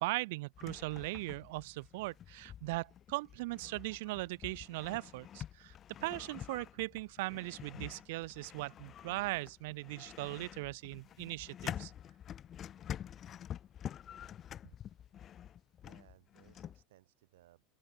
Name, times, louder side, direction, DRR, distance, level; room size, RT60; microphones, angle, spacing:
voice 1, 0.0-5.7 6.0-11.9, right 22 dB, 70° right, 0.4 m, -39 dB
sound 1, 0.5-16.8, left 10 dB, 30° left, 0.7 m, -48 dB
voice 2, 15.8-17.6, right 15 dB, 90° right, 7.9 m, -64 dB
open air
supercardioid pair, 145°, 0 cm